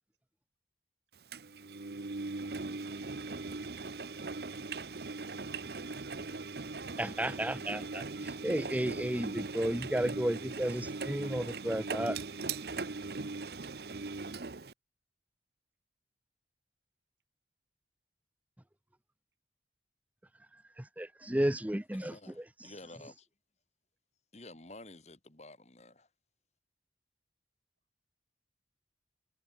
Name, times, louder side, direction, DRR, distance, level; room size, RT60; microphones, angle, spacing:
Engine, 1.3-14.7, right 3 dB, 60° right, 0.9 m, -40 dB
voice 1, 5.2-7.1, right 2 dB, 80° right, 5.7 m, -55 dB
voice 2, 7.0-12.2 20.5-22.1 22.6-22.7, right 1 dB, 10° right, 0.6 m, -33 dB
voice 3, 21.9-23.3 24.3-26.1, left 2 dB, 40° left, 2.4 m, -51 dB
head